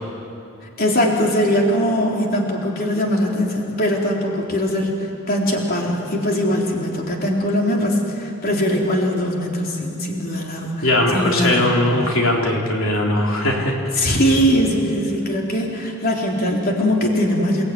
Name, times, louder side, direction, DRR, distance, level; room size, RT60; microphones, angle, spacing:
voice 1, 0.8-10.9 11.1-11.8 13.9-17.6, equal, 45° left, -1 dB, 3.9 m, -21 dB
voice 2, 10.8-13.8, left 1 dB, 70° left, -1 dB, 3.6 m, -19 dB
29.5 x 20.0 x 9.6 m, 2.6 s
head